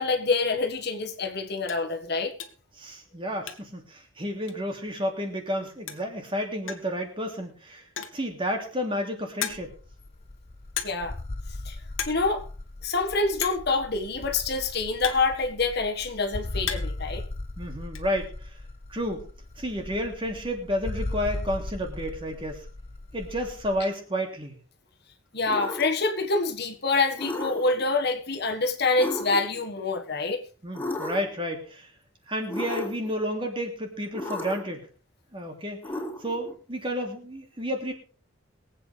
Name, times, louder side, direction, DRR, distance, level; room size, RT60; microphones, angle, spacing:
voice 1, 0.0-2.3 10.8-11.1 11.7-11.8 12.1-12.4 12.8-17.2 25.3-30.4, left 3 dB, 55° left, 1.7 m, -26 dB
sound 1, 0.7-0.9 1.2-1.3 1.6-1.9 2.4-2.7 3.0-3.9 4.1-4.2 4.5-4.6 5.6-5.7 5.9-6.2 6.7-7.0 7.8-8.3 8.8-8.9 9.4-9.9 10.8-11.2 11.4-11.7 11.9-12.3 12.5-12.6 13.4-13.7 14.5-15.9 16.3-17.1 17.3-18.0, left 8 dB, 75° left, 1.7 m, -35 dB
voice 2, 2.8-7.8 8.1-9.7 17.6-18.3 18.9-19.3 19.6-22.7 23.1-24.5 30.6-31.9 32.3-34.9 35.3-35.8 36.2-37.9, equal, 25° right, 3.1 m, -31 dB
sound 2, 9.5-23.8, left 2 dB, 30° left, 0.7 m, -38 dB
sound 3, 25.5-26.1 27.2-27.8 29.0-29.6 30.7-31.4 32.5-33.1 34.1-34.8 35.8-36.5, left 1 dB, 10° left, 4.0 m, -34 dB
23.0 x 8.6 x 3.4 m
head